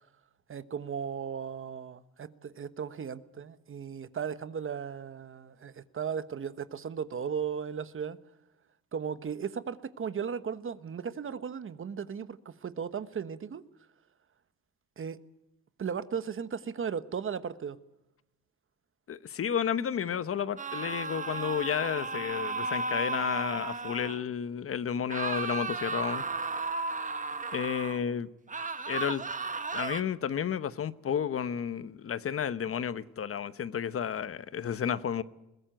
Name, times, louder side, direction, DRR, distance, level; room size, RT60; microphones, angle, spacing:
voice 1, 0.5-8.2 8.9-13.6 15.0-15.2 15.8-17.8, right 7 dB, 45° right, 1.2 m, -36 dB
voice 2, 19.1-26.2 27.5-28.3 28.9-29.2 29.7-35.2, left 8 dB, 45° left, 1.0 m, -32 dB
sound 1, 20.6-24.2 25.1-28.0 28.5-30.0, right 3 dB, 25° right, 1.3 m, -34 dB
21.5 x 17.0 x 9.1 m
cardioid pair, 90°, 30 cm